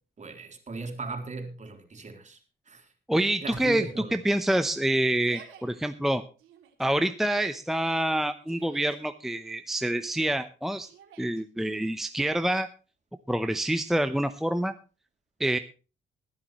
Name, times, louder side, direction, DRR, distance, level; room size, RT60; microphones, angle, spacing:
voice 1, 0.2-2.4 2.7-2.9 3.4-4.2, right 3 dB, 35° right, 3 dB, 3.7 m, -38 dB
voice 2, 3.1-6.2 6.8-10.9 11.2-12.7 13.3-14.7 15.4-15.6, right 1 dB, ahead, 9 dB, 0.8 m, -27 dB
Yell, 3.7-4.2 5.1-5.6 6.4-6.9 8.1-9.0 10.8-11.4, right 8 dB, 85° right, 3.0 m, -52 dB
21.0 x 10.5 x 3.1 m, 0.35 s
cardioid pair, 90°, 20 cm